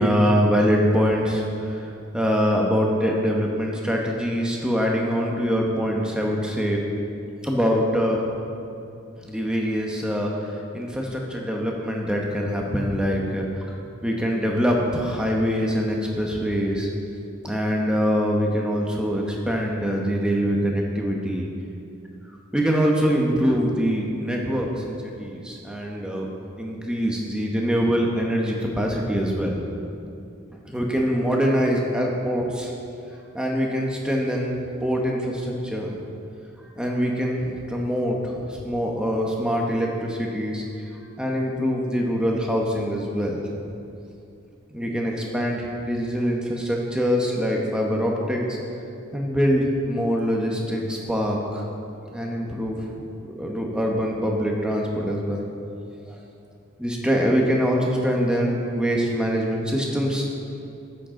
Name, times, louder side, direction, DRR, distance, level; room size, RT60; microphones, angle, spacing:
voice 1, 0.0-1.9 2.1-6.8 7.4-8.2 9.3-13.7 14.0-16.9 17.4-21.5 22.5-26.3 26.6-29.6 30.7-32.7 33.3-35.9 36.8-40.6 41.2-43.4 44.7-48.6 49.1-51.6 52.1-52.8 53.2-55.4 56.1-56.2 56.8-60.2, equal, 5° right, -1 dB, 1.0 m, -24 dB
12.5 x 9.0 x 3.8 m, 2.6 s
head